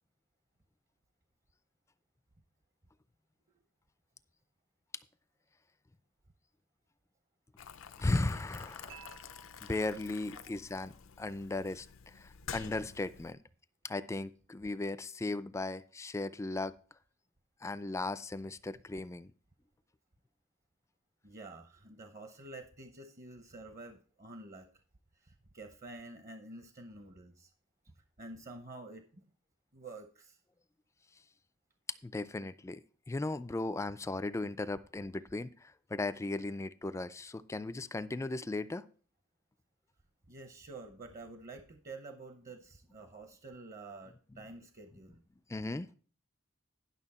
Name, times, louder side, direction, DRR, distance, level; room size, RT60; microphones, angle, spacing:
Boiling, 7.6-13.3, left 7 dB, 80° left, 0.5 m, -49 dB
voice 1, 8.0-9.0 9.7-13.4 13.8-16.7 17.6-19.3 32.0-32.8 33.1-38.9 45.5-45.9, left 2 dB, 15° left, 14 dB, 0.3 m, -36 dB
voice 2, 8.8-9.2 10.3-10.6 12.4-12.5 21.2-24.7 25.2-27.5 28.2-29.0 29.7-30.4 40.3-45.2, right 2 dB, 40° right, 7 dB, 0.8 m, -49 dB
Dishes pots and pans / Chink clink, 8.9-11.0, right 8 dB, 65° right, 3.4 m, -57 dB
11.0 x 6.2 x 4.2 m, 0.42 s
head